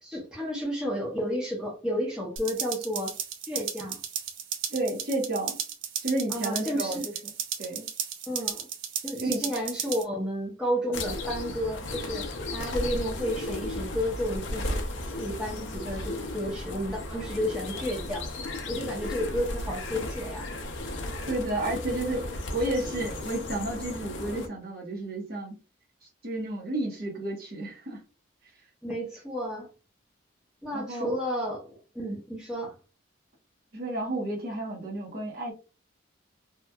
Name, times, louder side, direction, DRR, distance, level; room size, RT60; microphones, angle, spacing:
voice 1, 0.0-3.1 3.5-4.0 6.3-7.1 8.3-8.7 9.0-14.8 15.2-18.3 18.7-20.5 28.8-29.7 30.6-32.8, equal, 5° right, 0.7 m, -32 dB
sound 1, 2.4-10.0, right 8 dB, 80° right, 0.5 m, -35 dB
voice 2, 4.7-5.6 6.0-7.3 7.6-7.9 9.2-9.4 21.3-25.6 26.0-28.0 30.7-31.1 33.7-35.5, right 1 dB, 50° right, 0.9 m, -31 dB
sound 2, 10.9-24.5, left 2 dB, 70° left, 0.5 m, -35 dB
2.8 x 2.3 x 2.3 m
head